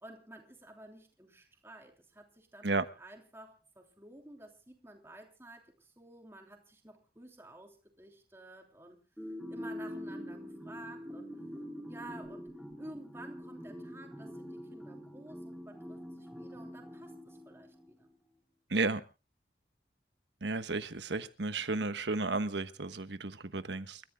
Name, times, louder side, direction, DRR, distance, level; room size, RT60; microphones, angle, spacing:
voice 1, 0.0-9.0 9.5-11.3 11.9-18.1, right 1 dB, 15° right, 3.2 m, -52 dB
sound 1, 9.2-17.9, equal, ahead, 3.6 m, -45 dB
voice 2, 18.7-19.0 20.4-24.0, right 3 dB, 85° right, 1.3 m, -33 dB
29.5 x 14.5 x 2.3 m
head